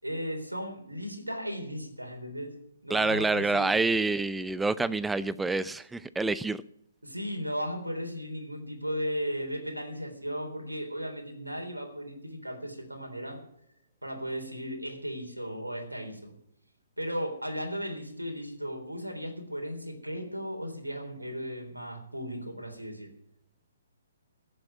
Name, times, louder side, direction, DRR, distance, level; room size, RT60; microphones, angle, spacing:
voice 1, 0.0-2.5 2.8-3.7 7.0-13.4 14.0-16.3 17.0-23.1, equal, 85° right, 3 dB, 3.7 m, -36 dB
voice 2, 2.9-6.6, right 3 dB, 5° right, 18 dB, 0.5 m, -27 dB
15.5 x 7.8 x 8.3 m, 0.74 s
figure-of-eight pair, 130°, 0 cm